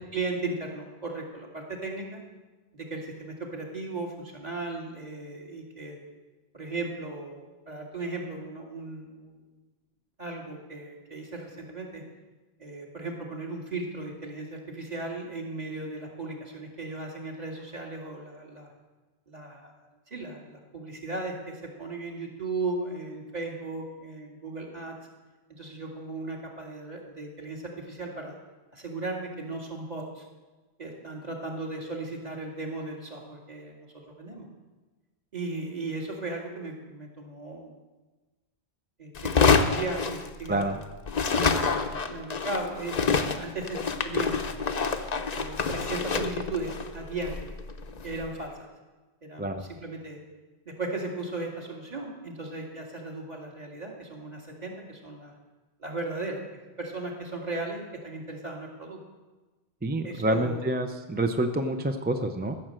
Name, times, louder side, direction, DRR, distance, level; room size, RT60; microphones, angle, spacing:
voice 1, 0.1-2.2 2.7-6.0 6.5-9.4 10.2-12.0 12.6-18.7 19.3-25.0 25.5-28.4 28.7-30.3 30.8-34.5 35.3-37.8 39.0-40.8 41.3-44.7 45.3-47.5 48.0-48.7 49.2-50.2 50.7-55.4 55.8-59.0 60.0-60.6, right 3 dB, 40° right, -1 dB, 2.2 m, -36 dB
sound 1, 39.1-40.8 41.1-48.3, left 5 dB, 45° left, 0.8 m, -27 dB
voice 2, 59.8-62.5, right 1 dB, 10° right, 6 dB, 0.5 m, -27 dB
14.0 x 6.6 x 7.5 m, 1.2 s
omnidirectional pair, 1.1 m